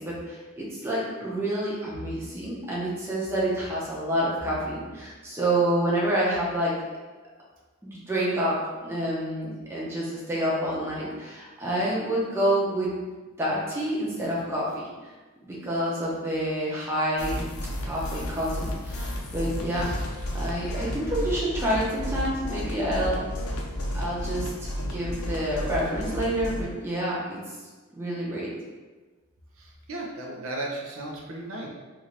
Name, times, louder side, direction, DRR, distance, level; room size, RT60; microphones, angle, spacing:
voice 1, 0.0-6.7 7.8-8.6 8.8-12.9 13.4-14.8 15.4-17.4 17.8-19.9 20.3-23.2 23.9-27.4 27.9-28.5, right 1 dB, 10° right, -7 dB, 0.7 m, -28 dB
sound 1, 17.2-26.6, left 1 dB, 85° left, 0.5 m, -32 dB
voice 2, 29.6-31.7, right 2 dB, 75° right, -1 dB, 0.5 m, -35 dB
2.6 x 2.5 x 3.1 m, 1.3 s
head